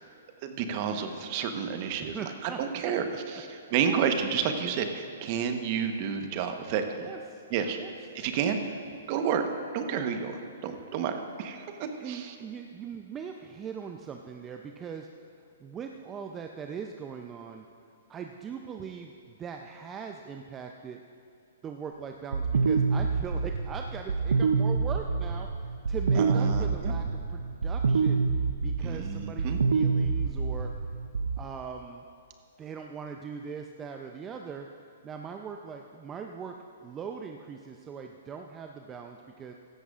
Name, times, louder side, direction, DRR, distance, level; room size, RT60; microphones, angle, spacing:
voice 1, 0.4-3.1 3.5-7.1 7.5-7.8 8.1-8.6 9.1-9.4 9.7-12.3 26.2-26.9 28.8-29.6, right 7 dB, 45° right, 6 dB, 1.1 m, -30 dB
voice 2, 2.0-2.9 3.6-4.0 7.0-7.4 7.7-7.9 11.8-15.1 15.6-17.7 18.1-21.0 21.6-25.5 25.9-28.2 28.6-30.7 31.4-32.0 32.6-34.7 35.0-36.5 36.8-39.5, right 6 dB, 20° right, 4 dB, 0.5 m, -40 dB
sound 1, 22.3-31.4, right 4 dB, 80° right, 0.6 m, -27 dB
16.5 x 13.5 x 2.5 m, 2.7 s
hypercardioid pair, 125°, 0 cm